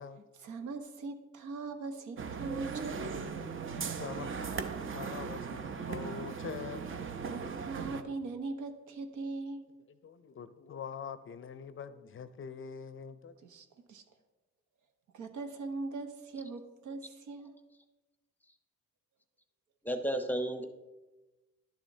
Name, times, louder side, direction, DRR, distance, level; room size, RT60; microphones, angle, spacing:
voice 1, 0.4-3.1 7.2-9.7 13.4-14.0 15.1-17.5, right 3 dB, 75° right, 6 dB, 1.0 m, -40 dB
sound 1, 2.2-8.0, right 5 dB, 45° right, 0.7 m, -38 dB
voice 2, 4.0-7.0 10.0-13.3, left 7 dB, 45° left, 12 dB, 0.5 m, -44 dB
voice 3, 19.8-20.6, right 1 dB, 5° left, 6 dB, 0.8 m, -32 dB
11.0 x 7.0 x 2.7 m, 1.1 s
cardioid pair, 90°, 30 cm